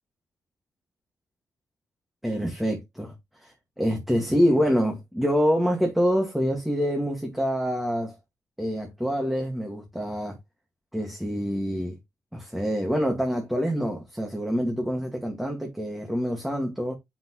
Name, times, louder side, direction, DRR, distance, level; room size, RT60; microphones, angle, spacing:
voice 1, 2.2-3.1 3.4-8.2 8.6-10.4 10.9-12.0 12.3-16.9, equal, 5° right, 2.1 m, -26 dB
7.2 x 6.1 x 3.2 m
cardioid pair, 115°, 5 cm